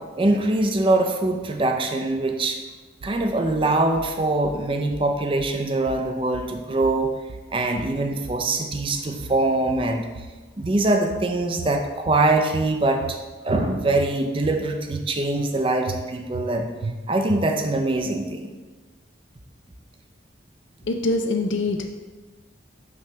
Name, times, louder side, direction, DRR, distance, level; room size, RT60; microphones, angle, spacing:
voice 1, 0.2-2.6 3.0-7.1 7.5-10.1 10.6-13.2 13.4-16.7 17.1-18.5, right 2 dB, 25° right, 4 dB, 0.5 m, -23 dB
sound 1, 3.0-3.6 4.0-4.6 4.9-5.6 5.9-6.6 6.8-7.5 7.8-8.5 8.7-9.4 9.7-10.4 10.6-11.3 11.6-12.2 12.5-13.2 13.5-14.1 14.4-15.1 15.4-15.5 15.9-16.5 16.8-17.0 17.3-17.8, right 4 dB, 85° right, 0.5 m, -36 dB
voice 2, 20.8-21.9, left 2 dB, 70° left, 5 dB, 0.4 m, -24 dB
6.0 x 3.2 x 5.7 m, 1.3 s
head